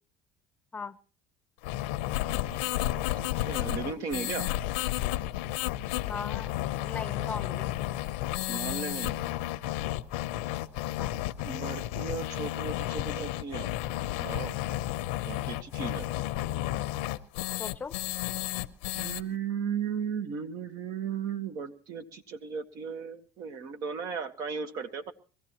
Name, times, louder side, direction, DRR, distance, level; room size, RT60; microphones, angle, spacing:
sound 1, 1.6-19.2, left 15 dB, 85° left, 0.7 m, -32 dB
voice 1, 2.5-2.8 3.2-4.5 8.5-9.2 11.4-13.7 14.2-14.5 15.3-16.1 18.9-25.1, right 6 dB, 65° right, 1.5 m, -36 dB
voice 2, 6.1-6.5 6.8-7.7 11.0-11.2 17.6-18.0, left 5 dB, 25° left, 0.7 m, -38 dB
22.5 x 15.5 x 3.0 m
supercardioid pair, 95°, 6 cm